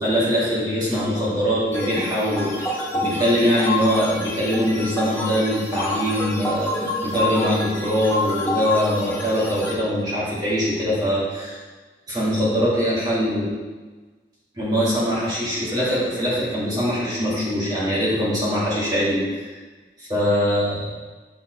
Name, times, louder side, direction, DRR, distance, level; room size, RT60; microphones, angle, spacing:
voice 1, 0.0-11.6 12.1-13.5 14.5-19.5 20.0-20.9, equal, 25° right, -8 dB, 2.3 m, -22 dB
sound 1, 1.7-9.7, left 2 dB, 15° left, 1.2 m, -28 dB
7.2 x 6.6 x 3.3 m, 1.3 s
head